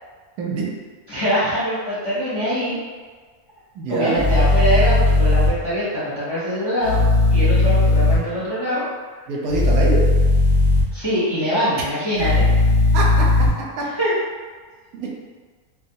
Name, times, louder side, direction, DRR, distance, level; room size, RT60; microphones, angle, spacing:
voice 1, 1.1-2.8 3.9-7.0 7.3-8.8 10.9-12.5 13.8-14.1, equal, 25° left, -11 dB, 0.6 m, -23 dB
voice 2, 3.8-4.2 9.3-10.0 12.9-13.2 14.9-15.1, right 3 dB, 90° right, -2 dB, 1.1 m, -24 dB
sound 1, 4.2-5.5 6.8-8.2 9.5-10.8 12.2-13.5, left 2 dB, 40° right, 0.6 m, -16 dB
2.6 x 2.2 x 2.7 m, 1.5 s
omnidirectional pair, 1.5 m